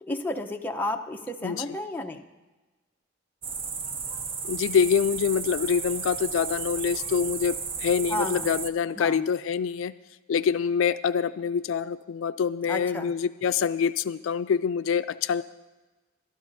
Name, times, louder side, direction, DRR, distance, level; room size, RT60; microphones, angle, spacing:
voice 1, 0.0-2.2 8.1-8.6 9.0-9.2 12.7-13.1, left 1 dB, 10° left, 2 dB, 0.7 m, -32 dB
sound 1, 3.4-8.7, right 5 dB, 25° right, 0.5 m, -33 dB
voice 2, 4.4-9.9 10.3-15.4, left 7 dB, 75° left, 13 dB, 0.3 m, -25 dB
22.5 x 12.5 x 2.7 m, 1.2 s
head